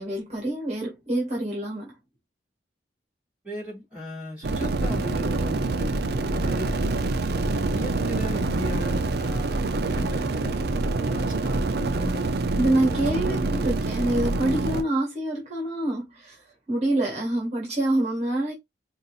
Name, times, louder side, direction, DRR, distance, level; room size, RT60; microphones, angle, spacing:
voice 1, 0.0-1.9 12.6-16.4 16.7-18.5, right 1 dB, 35° right, 1.7 m, -26 dB
voice 2, 3.4-6.8 7.3-12.2 12.7-13.7, left 1 dB, 5° right, 3.1 m, -37 dB
sound 1, 4.4-14.8, right 3 dB, 60° right, 0.5 m, -26 dB
5.2 x 2.8 x 2.4 m
head